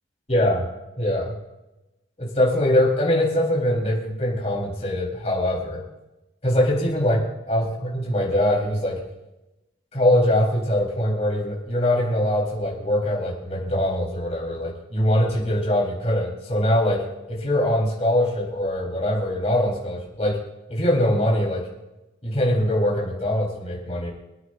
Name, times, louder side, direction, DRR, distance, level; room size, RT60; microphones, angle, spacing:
voice 1, 0.3-0.7 1.0-1.3 2.2-5.8 6.4-7.2 7.5-9.0 9.9-20.4 20.7-21.6 22.2-24.1, left 1 dB, 35° left, -3 dB, 4.0 m, -22 dB
27.0 x 9.2 x 2.6 m, 0.99 s
head